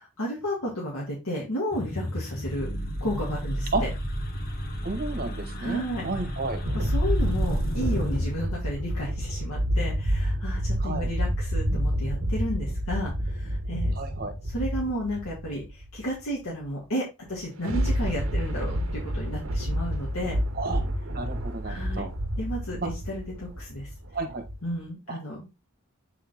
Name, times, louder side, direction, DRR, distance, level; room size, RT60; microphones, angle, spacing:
voice 1, 0.0-2.7 3.0-3.9 5.5-6.1 6.7-14.0 14.4-20.4 21.6-22.1 22.4-23.9 24.6-25.5, equal, 85° left, -4 dB, 2.2 m, -33 dB
sound 1, 1.7-8.3, equal, 45° left, 1.4 m, -32 dB
voice 2, 4.8-6.6 10.8-11.1 13.9-14.3 20.5-20.8 21.1-22.1 22.8-22.9 24.1-24.4 25.1-25.2, right 3 dB, 45° right, 6 dB, 1.5 m, -32 dB
sound 2, 5.7-5.8 6.3-16.0 17.3-24.6, equal, 75° right, 1.3 m, -29 dB
8.4 x 3.8 x 3.6 m, 0.24 s
head